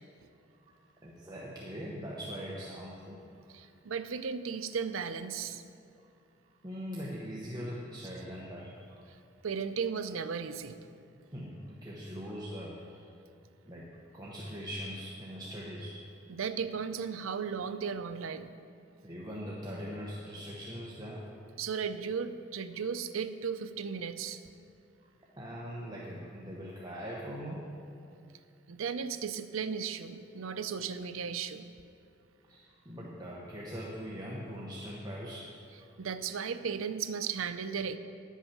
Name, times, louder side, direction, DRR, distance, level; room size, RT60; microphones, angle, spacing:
voice 1, 1.0-3.2 3.5-3.6 6.6-9.1 11.3-13.1 13.6-16.0 19.0-21.3 25.4-27.7 32.5-35.5, equal, 20° right, -5 dB, 1.0 m, -41 dB
voice 2, 3.5-5.6 9.4-10.7 16.3-18.5 21.6-24.4 28.7-31.7 36.0-38.0, right 6 dB, 85° right, 10 dB, 0.5 m, -35 dB
10.0 x 8.2 x 5.9 m, 2.5 s
head